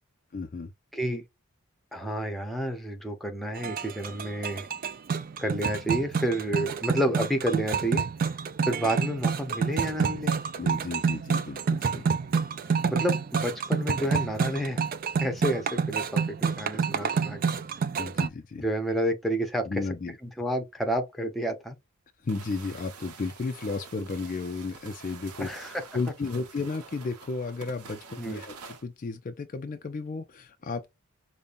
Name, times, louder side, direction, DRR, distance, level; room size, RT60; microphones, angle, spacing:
voice 1, 0.3-0.7 10.6-12.2 18.0-18.6 19.6-20.2 22.2-30.9, left 3 dB, 35° left, 0.4 m, -34 dB
voice 2, 0.9-1.2 1.9-4.7 5.4-8.1 8.7-10.3 12.9-14.8 15.2-17.6 18.6-19.8 20.4-21.8 25.4-25.8 28.2-28.4, right 1 dB, ahead, 0.7 m, -30 dB
sound 1, 3.6-18.3, right 5 dB, 40° right, 0.3 m, -28 dB
sound 2, 22.3-28.8, right 5 dB, 90° right, 0.8 m, -47 dB
5.2 x 2.1 x 2.5 m
head